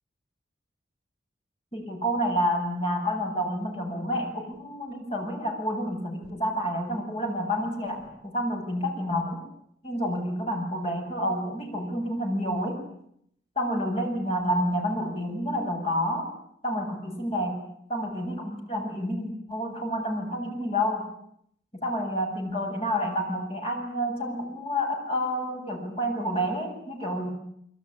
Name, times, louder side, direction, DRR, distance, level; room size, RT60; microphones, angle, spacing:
voice 1, 1.7-9.4 9.8-12.8 13.6-16.3 16.6-17.6 17.9-21.1 21.8-27.3, equal, 30° left, 2 dB, 7.9 m, -29 dB
25.0 x 24.0 x 9.9 m, 0.72 s
head